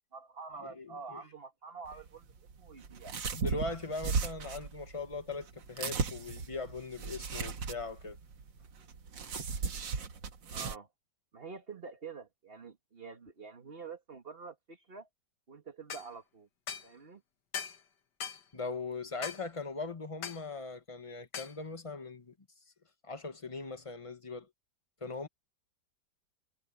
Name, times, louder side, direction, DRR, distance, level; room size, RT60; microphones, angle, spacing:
voice 1, 0.1-3.1 10.5-10.9 11.3-15.1 15.5-16.5 16.8-17.2, right 5 dB, 35° right, 1.8 m, -47 dB
voice 2, 0.7-1.2 3.3-8.2 18.5-22.3 23.0-24.5 25.0-25.3, left 3 dB, 20° left, 1.3 m, -40 dB
sound 1, 1.8-10.8, right 5 dB, 85° right, 2.3 m, -37 dB
sound 2, 15.9-16.1 16.7-16.9 17.5-17.8 18.2-18.4 19.2-19.4 20.2-20.4 21.3-21.6, left 7 dB, 70° left, 1.9 m, -39 dB
omnidirectional pair, 2.0 m